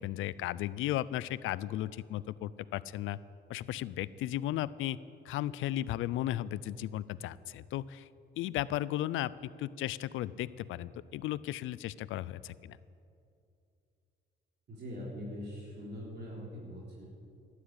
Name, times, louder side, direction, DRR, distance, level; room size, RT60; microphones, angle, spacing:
voice 1, 0.0-3.2 3.5-5.0 5.2-8.1 8.4-12.8, left 13 dB, 85° left, 18 dB, 0.5 m, -35 dB
voice 2, 14.7-17.0, equal, 55° right, -4 dB, 3.6 m, -42 dB
12.5 x 10.0 x 8.8 m, 2.6 s
cardioid pair, 90°, 20 cm